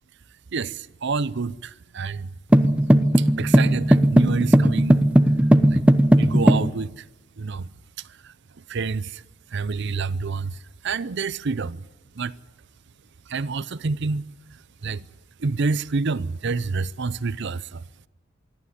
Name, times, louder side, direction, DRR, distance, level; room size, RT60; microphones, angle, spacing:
voice 1, 0.5-2.3 3.2-5.1 5.7-5.8 6.2-7.0 7.4-7.6 8.7-9.2 9.5-10.5 10.8-11.8 12.2-12.3 13.3-14.3 14.8-15.0 15.4-17.8, right 4 dB, 60° right, 0.6 m, -27 dB
sound 1, 2.5-6.7, equal, 5° right, 0.9 m, -17 dB
25.5 x 12.5 x 9.8 m
head